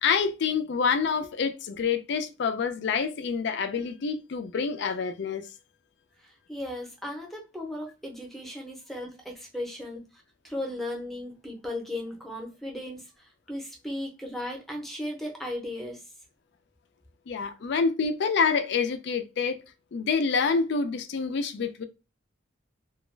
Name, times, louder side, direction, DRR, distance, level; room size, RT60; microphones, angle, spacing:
voice 1, 0.0-5.5 17.3-19.6 19.9-21.8, left 5 dB, 60° left, 0.4 m, -27 dB
voice 2, 6.2-16.1, left 1 dB, ahead, 0.6 m, -36 dB
2.3 x 2.1 x 3.1 m
head